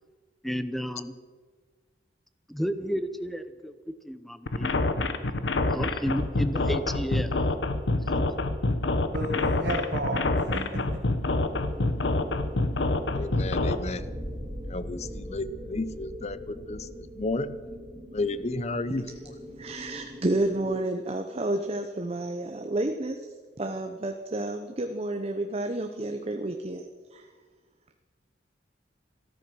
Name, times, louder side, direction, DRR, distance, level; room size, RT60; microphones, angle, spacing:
voice 1, 0.4-1.1 2.5-3.7 4.0-4.7 5.7-7.3, equal, ahead, 11 dB, 0.7 m, -32 dB
sound 1, 4.5-13.8, left 2 dB, 75° left, 1.0 m, -26 dB
voice 2, 9.1-11.2, right 1 dB, 65° right, 2 dB, 1.5 m, -32 dB
sound 2, 11.4-20.8, equal, 15° right, 2.9 m, -41 dB
voice 3, 13.1-14.1 14.7-16.9 17.2-17.6 18.1-19.1, left 2 dB, 35° left, 14 dB, 0.7 m, -32 dB
voice 4, 19.6-27.3, right 2 dB, 35° right, 5 dB, 0.8 m, -30 dB
14.0 x 13.0 x 6.2 m, 1.4 s
head